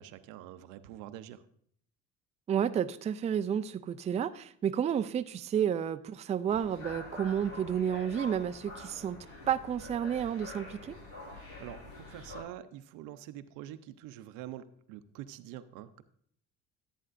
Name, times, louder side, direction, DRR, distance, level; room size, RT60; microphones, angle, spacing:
voice 1, 0.0-1.4 11.3-16.0, right 12 dB, 90° right, 11 dB, 0.6 m, -46 dB
voice 2, 2.5-9.2 9.5-11.0, right 8 dB, 25° right, 11 dB, 0.3 m, -31 dB
sound 1, 6.5-12.4, left 2 dB, 90° left, 4.2 m, -46 dB
13.5 x 8.8 x 2.5 m, 0.64 s
cardioid pair, 105°, 30 cm